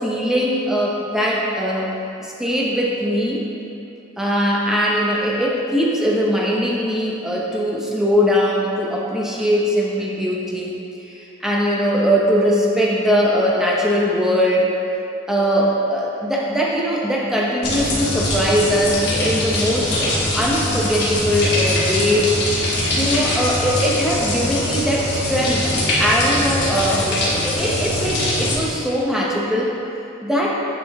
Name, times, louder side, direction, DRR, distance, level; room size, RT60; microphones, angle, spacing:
voice 1, 0.0-2.0 2.2-3.4 4.2-14.7 15.3-22.3 22.9-25.7 26.0-29.7 30.2-30.6, equal, ahead, -4 dB, 0.8 m, -20 dB
sound 1, 17.6-28.5, left 1 dB, 50° left, 1.6 m, -22 dB
9.6 x 5.1 x 3.5 m, 2.8 s
head